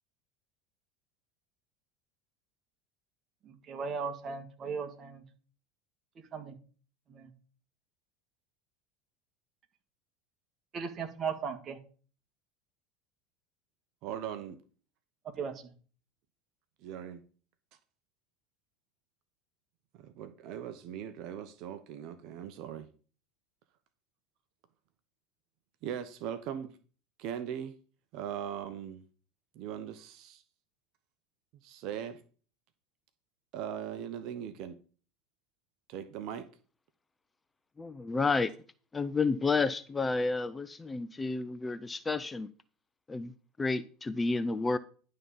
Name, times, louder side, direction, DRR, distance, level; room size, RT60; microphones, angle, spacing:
voice 1, 3.5-5.2 6.3-6.6 7.1-7.3 10.7-11.8 15.4-15.5, right 5 dB, 40° right, 1.9 m, -37 dB
voice 2, 14.0-14.6 16.8-17.2 19.9-22.9 25.8-26.8 27.2-27.7 28.1-29.0 29.5-30.4 31.6-32.2 33.5-34.8 35.9-36.5, right 9 dB, 60° right, 0.8 m, -39 dB
voice 3, 37.8-38.5 38.9-42.5 43.1-43.3 43.6-44.8, left 3 dB, 20° left, 0.6 m, -30 dB
11.0 x 3.8 x 7.0 m
hypercardioid pair, 90°, 0 cm